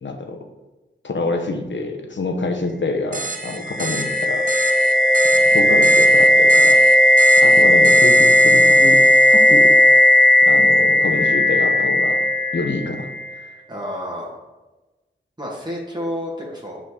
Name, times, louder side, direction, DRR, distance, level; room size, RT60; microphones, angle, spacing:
voice 1, 0.0-0.4 1.0-4.5 5.3-6.8 7.4-9.0 9.3-9.7 10.4-12.2 12.5-13.1, left 3 dB, 75° left, 4 dB, 0.9 m, -26 dB
sound 1, 3.1-10.3, right 3 dB, 45° right, 0.6 m, -32 dB
sound 2, 3.4-13.3, left 1 dB, 5° left, 1.0 m, -14 dB
voice 2, 13.7-14.4 15.4-16.8, equal, 20° right, -4 dB, 1.7 m, -30 dB
5.3 x 4.2 x 4.9 m, 1.1 s
cardioid pair, 50°, 19 cm